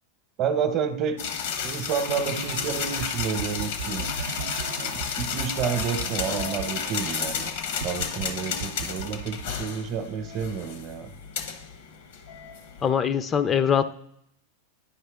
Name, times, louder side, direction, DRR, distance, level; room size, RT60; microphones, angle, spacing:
voice 1, 0.4-1.2 1.6-4.1 4.8-7.5 7.8-11.1, right 7 dB, 45° right, 9 dB, 0.8 m, -30 dB
sound 1, 1.2-12.9, left 7 dB, 65° left, 0.8 m, -32 dB
sound 2, 2.1-7.5 7.8-8.3 8.6-10.1, right 7 dB, 80° right, 0.4 m, -37 dB
voice 2, 12.8-13.9, left 8 dB, 30° left, 12 dB, 0.4 m, -23 dB
10.5 x 4.7 x 3.4 m, 0.71 s
hypercardioid pair, 110°, 0 cm